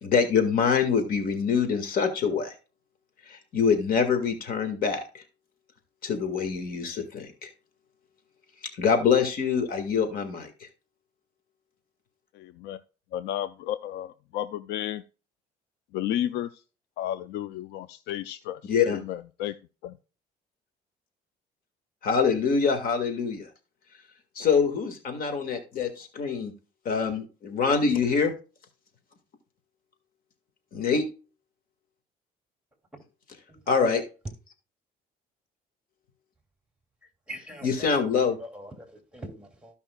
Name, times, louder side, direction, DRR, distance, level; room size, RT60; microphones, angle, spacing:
voice 1, 0.0-2.5 3.3-5.2 6.0-7.5 8.8-10.5 18.7-19.0 22.0-23.5 24.4-26.5 26.9-28.3 30.7-31.0 33.7-34.0 37.6-38.4, left 6 dB, 60° left, 1.9 m, -25 dB
voice 2, 12.3-12.8 13.1-15.0 15.9-16.6 17.0-19.5 19.8-20.0, left 11 dB, 80° left, 0.5 m, -32 dB
voice 3, 33.5-33.9 37.3-38.0 38.4-39.8, right 1 dB, 5° right, 2.6 m, -43 dB
15.0 x 5.4 x 2.3 m
cardioid pair, 110°, 17 cm